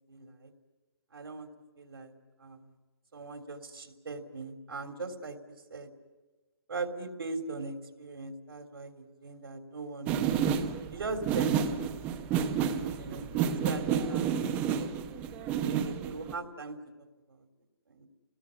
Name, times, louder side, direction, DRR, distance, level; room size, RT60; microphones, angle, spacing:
voice 1, 0.1-0.5 1.1-1.5 1.8-2.1 2.4-2.7 3.1-5.4 5.7-5.9 6.7-10.4 10.9-12.5 12.9-14.9 15.6-16.8 17.3-17.4 17.9-18.1, right 3 dB, 80° right, 6 dB, 3.4 m, -40 dB
sound 1, 10.1-16.3, right 8 dB, 10° right, 0.8 m, -30 dB
27.0 x 20.5 x 9.9 m, 1.2 s
hypercardioid pair, 170°, 12 cm